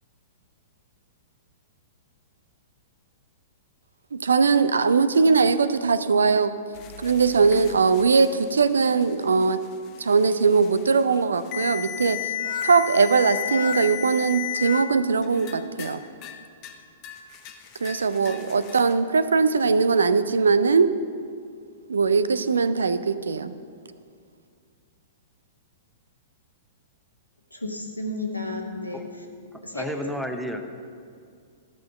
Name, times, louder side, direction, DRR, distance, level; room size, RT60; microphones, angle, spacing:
voice 1, 4.1-6.5 7.0-9.6 10.0-12.3 12.6-16.0 17.8-20.9 21.9-23.5, right 5 dB, 70° right, 13 dB, 0.5 m, -20 dB
sound 1, 6.7-14.8 15.2-16.0 16.2-16.8 17.0-18.9, left 10 dB, 35° left, 0.9 m, -34 dB
voice 2, 27.5-29.3 29.6-29.9, left 2 dB, 90° left, 1 dB, 1.5 m, -32 dB
voice 3, 29.5-30.6, equal, ahead, 5 dB, 0.8 m, -32 dB
13.5 x 6.0 x 6.6 m, 2.3 s
figure-of-eight pair, 105°, 0 cm